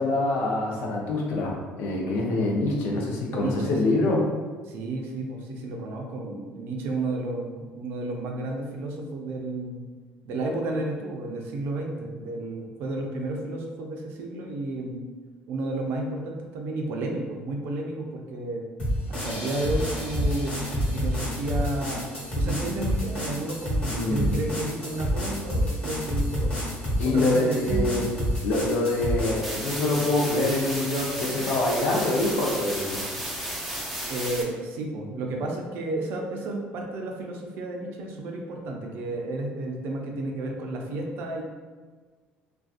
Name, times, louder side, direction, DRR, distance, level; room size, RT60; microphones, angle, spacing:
voice 1, 0.0-4.2 23.9-24.3 27.0-28.1 28.4-33.1, left 2 dB, 70° left, -1 dB, 0.6 m, -25 dB
voice 2, 3.3-4.0 4.7-9.9 10.2-15.0 15.5-18.6 19.1-22.0 22.3-26.6 27.0-28.2 34.1-41.4, right 2 dB, 70° right, 1 dB, 0.5 m, -32 dB
sound 1, 18.8-29.5, equal, 35° left, 1.1 m, -29 dB
sound 2, 29.4-34.4, right 1 dB, 5° right, 0.5 m, -33 dB
2.5 x 2.2 x 2.4 m, 1.4 s
cardioid pair, 105°, 4 cm